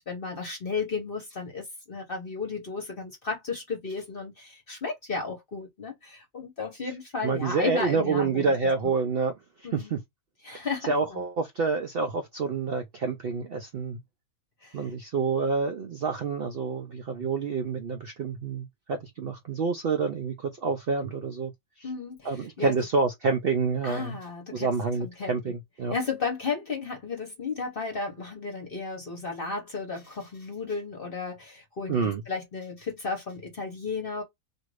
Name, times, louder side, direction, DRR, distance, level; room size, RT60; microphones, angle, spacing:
voice 1, 0.0-8.5 8.8-8.9 9.6-9.9 10.4-11.2 14.6-14.9 21.8-22.7 23.8-24.7 25.0-25.5 25.9-34.2, left 4 dB, 45° left, 0.9 m, -34 dB
voice 2, 7.2-9.3 9.6-10.0 10.5-14.0 14.7-21.5 21.8-21.9 22.2-24.2 24.5-25.9 31.9-32.2, right 4 dB, 80° right, 0.5 m, -28 dB
2.7 x 2.5 x 3.0 m
omnidirectional pair, 1.6 m